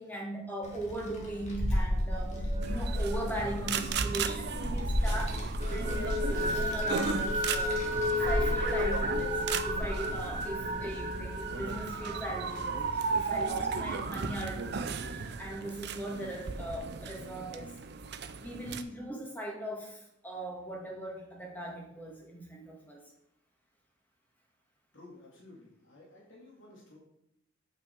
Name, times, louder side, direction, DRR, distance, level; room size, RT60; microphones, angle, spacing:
voice 1, 0.0-17.7 18.4-23.0, right 1 dB, 10° left, -1 dB, 1.9 m, -39 dB
Child speech kid speaking, 0.6-15.1, equal, 35° left, 1.7 m, -35 dB
sound 1, 2.1-5.0 5.3-14.7, left 1 dB, 30° right, 1.5 m, -35 dB
sound 2, 2.6-18.8, right 5 dB, 55° right, 0.6 m, -36 dB
voice 2, 24.9-27.0, left 2 dB, 75° left, -4 dB, 2.5 m, -53 dB
8.1 x 5.7 x 4.6 m, 0.80 s
head